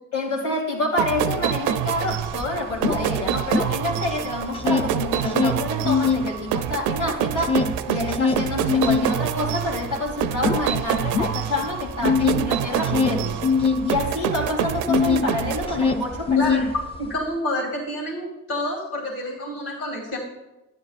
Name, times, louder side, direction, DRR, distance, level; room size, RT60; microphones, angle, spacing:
voice 1, 0.1-13.4 13.8-16.4, left 2 dB, 70° left, -3 dB, 2.6 m, -28 dB
sound 1, 1.0-16.3, right 10 dB, 85° right, 0.5 m, -27 dB
sound 2, 1.8-1.9 2.1-4.1 4.4-6.3 6.7-15.3 15.6-17.1, left 5 dB, 20° left, 0.6 m, -23 dB
voice 2, 16.3-16.7 17.0-20.2, left 1 dB, 50° left, -2 dB, 2.4 m, -28 dB
12.0 x 9.6 x 2.4 m, 1.0 s
cardioid pair, 90°, 30 cm